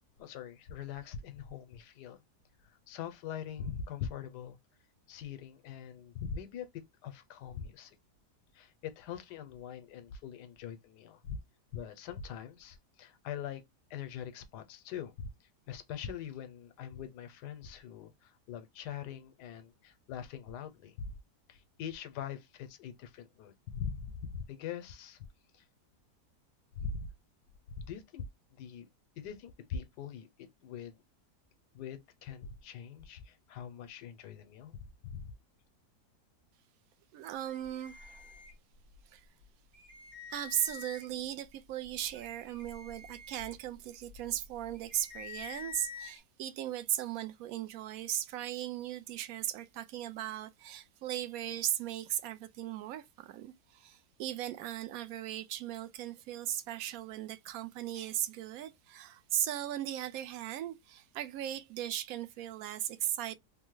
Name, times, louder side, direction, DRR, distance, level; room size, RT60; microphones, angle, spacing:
voice 1, 0.2-2.2 2.6-4.6 5.1-7.9 8.5-11.4 11.7-13.6 13.9-15.3 15.7-21.1 21.5-25.2 25.5-25.6 26.8-27.1 27.8-28.2 28.6-28.9 29.2-30.3 30.6-31.0 31.7-35.3, left 7 dB, 85° left, 1.2 m, -43 dB
voice 2, 37.1-38.3 39.1-39.2 40.3-63.3, right 12 dB, 70° right, 0.9 m, -37 dB
sound 1, 37.4-39.0 39.4-39.5 39.7-41.3 41.8-46.2, left 6 dB, 45° right, 1.6 m, -48 dB
3.3 x 2.1 x 3.0 m
omnidirectional pair, 1.7 m